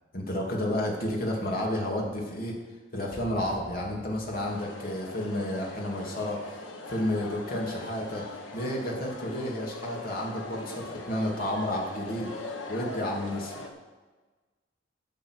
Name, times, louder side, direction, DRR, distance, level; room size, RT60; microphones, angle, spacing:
voice 1, 0.1-2.5 2.9-8.2 8.5-12.3 12.7-13.6, left 1 dB, 50° left, -2 dB, 2.8 m, -31 dB
sound 1, 3.1-5.2, right 1 dB, 20° right, 3.2 m, -48 dB
sound 2, 4.4-13.7, left 2 dB, 85° left, 1.5 m, -41 dB
11.5 x 7.6 x 6.6 m, 1.3 s
head